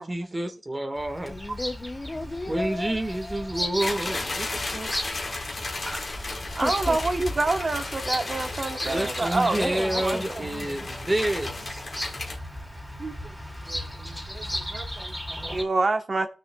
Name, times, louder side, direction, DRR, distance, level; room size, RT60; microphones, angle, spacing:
voice 1, 0.0-1.4 2.5-4.5 4.7-4.9 5.9-6.0 8.8-11.8, right 1 dB, 30° right, 1.5 m, -29 dB
Bird vocalization bird call bird song, 0.9-15.6, equal, 5° right, 2.3 m, -36 dB
voice 2, 1.3-3.7 6.4-7.0 9.5-10.9, left 2 dB, 35° left, 0.5 m, -36 dB
sound 1, 3.8-12.4, left 2 dB, 55° left, 1.6 m, -34 dB
voice 3, 6.6-10.4 13.0-13.2 13.7-16.3, right 3 dB, 55° right, 1.0 m, -28 dB
14.5 x 6.5 x 2.2 m
cardioid pair, 55°, 0 cm